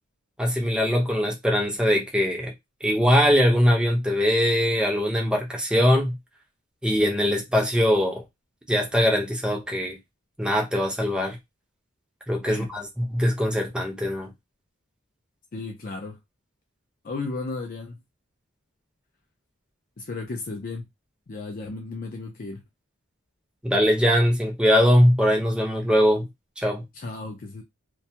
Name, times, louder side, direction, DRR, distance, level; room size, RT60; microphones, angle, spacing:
voice 1, 0.4-2.5 2.8-6.2 6.8-8.2 8.7-10.0 10.4-11.4 12.3-14.3 23.6-26.3 26.6-26.8, equal, 5° right, 0.6 m, -21 dB
voice 2, 15.5-16.2 17.0-18.0 20.0-20.9 21.3-22.6 26.9-27.6, left 3 dB, 40° left, 0.4 m, -34 dB
2.2 x 2.2 x 2.7 m
head